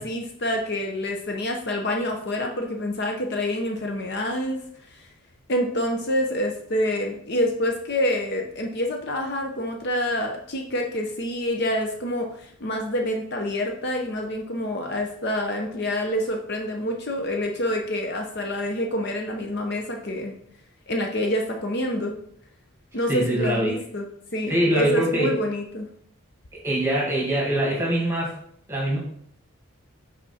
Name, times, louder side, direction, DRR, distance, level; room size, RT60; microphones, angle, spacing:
voice 1, 0.0-4.6 5.0-5.1 5.5-20.3 20.9-22.2 22.9-24.1 24.3-25.9, left 1 dB, 50° left, 2 dB, 0.7 m, -27 dB
voice 2, 23.1-23.7 24.5-25.3 26.6-28.3 28.7-29.0, right 1 dB, 10° right, -3 dB, 1.9 m, -23 dB
5.9 x 4.3 x 4.2 m, 0.66 s
head